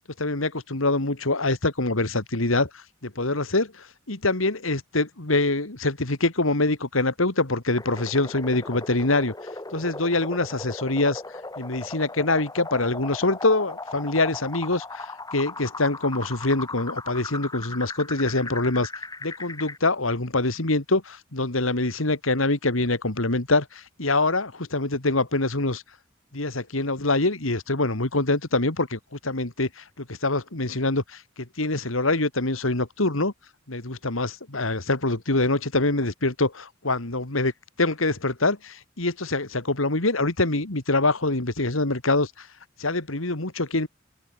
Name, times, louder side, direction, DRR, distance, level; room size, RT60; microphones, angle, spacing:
voice 1, 0.2-9.3 9.7-11.2 11.6-18.9 19.2-25.8 26.3-33.3 33.7-37.5 37.8-42.5 42.8-43.9, left 2 dB, 85° left, 2.6 m, -25 dB
sound 1, 7.8-19.8, left 3 dB, 20° left, 4.4 m, -37 dB
head